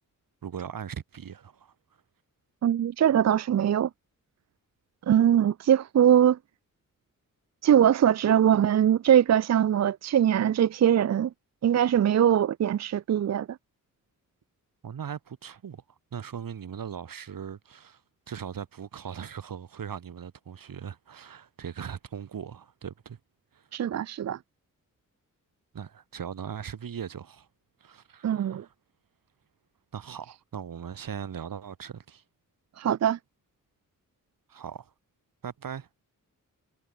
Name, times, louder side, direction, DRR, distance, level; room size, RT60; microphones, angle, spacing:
voice 1, 0.4-1.7 14.8-15.8 16.1-18.0 18.3-23.2 23.5-23.7 25.7-27.5 27.8-28.7 29.9-32.2 34.5-34.9 35.4-35.9, right 8 dB, 90° right, 7.1 m, -39 dB
voice 2, 2.6-3.9 5.1-6.4 7.6-11.3 11.6-13.6 23.7-24.4 28.2-28.6 32.8-33.2, right 10 dB, 55° right, 0.5 m, -22 dB
wide cardioid pair, 175°, 33 cm